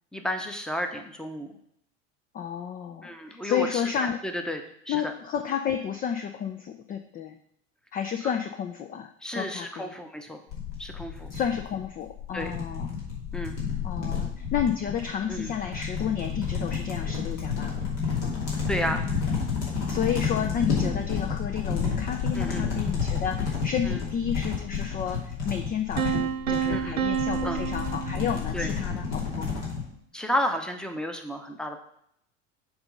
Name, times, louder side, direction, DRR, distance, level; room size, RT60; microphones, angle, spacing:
voice 1, 0.1-1.6 3.0-3.8 4.2-4.6 4.9-5.0 9.2-10.4 10.8-11.3 12.3-12.5 13.3-13.6 15.3-15.5 18.7-19.0 22.3-22.7 23.9-24.0 26.7-27.0 27.4-27.6 28.5-28.7 30.1-31.8, equal, ahead, 6 dB, 0.8 m, -32 dB
voice 2, 2.3-4.2 4.9-7.4 7.9-9.9 11.3-12.9 13.8-17.9 19.9-29.6, left 8 dB, 25° left, 7 dB, 0.4 m, -31 dB
sound 1, 10.5-29.8, left 6 dB, 65° left, 2.6 m, -30 dB
Piano, 26.0-28.9, right 8 dB, 85° right, 0.6 m, -29 dB
7.1 x 3.8 x 5.3 m, 0.70 s
hypercardioid pair, 75°, 38 cm